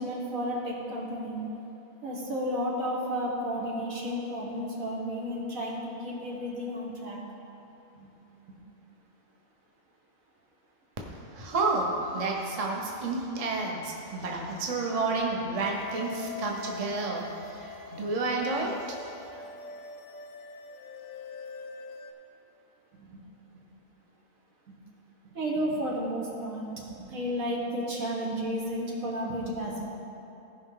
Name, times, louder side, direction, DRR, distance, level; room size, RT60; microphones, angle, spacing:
voice 1, 0.0-1.4 2.0-7.2 7.9-8.1 22.9-23.2 23.5-23.6 24.7-24.8 25.2-29.9, equal, 75° right, -3 dB, 1.9 m, -32 dB
voice 2, 11.2-19.0, right 3 dB, 30° right, -1 dB, 0.9 m, -30 dB
sound 1, 15.7-22.1, left 5 dB, 75° left, 1.1 m, -43 dB
15.5 x 5.2 x 3.9 m, 3.0 s
omnidirectional pair, 1.5 m